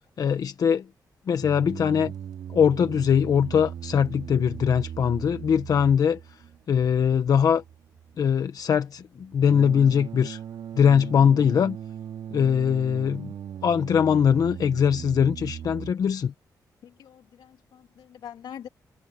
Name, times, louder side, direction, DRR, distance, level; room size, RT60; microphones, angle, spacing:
voice 1, 0.2-0.9 1.3-2.1 2.5-6.4 6.7-7.6 8.2-10.4 10.7-11.8 12.3-13.3 13.6-16.3, left 7 dB, 60° left, 0.9 m, -22 dB
sound 1, 1.4-15.9, right 9 dB, 80° right, 4.1 m, -39 dB
voice 2, 16.8-18.7, left 9 dB, 90° left, 2.5 m, -44 dB
cardioid pair, 105°, 7 cm